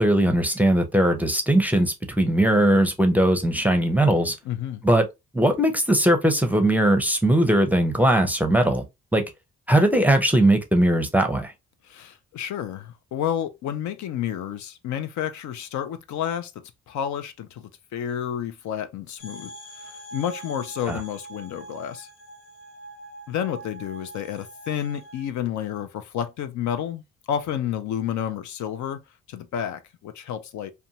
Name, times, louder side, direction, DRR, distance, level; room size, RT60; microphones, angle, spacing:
voice 1, 0.0-4.4 4.8-5.0 5.3-8.8 9.1-9.2 9.7-11.5 20.9-21.0, right 1 dB, 5° right, 0.5 m, -20 dB
voice 2, 4.5-4.8 11.8-16.5 16.9-19.5 19.8-22.1 23.3-27.0 27.3-29.0 29.3-30.7, left 9 dB, 70° left, 0.5 m, -30 dB
sound 1, 19.2-25.3, right 2 dB, 50° left, 1.0 m, -43 dB
2.5 x 2.2 x 2.8 m
cardioid pair, 90°, 30 cm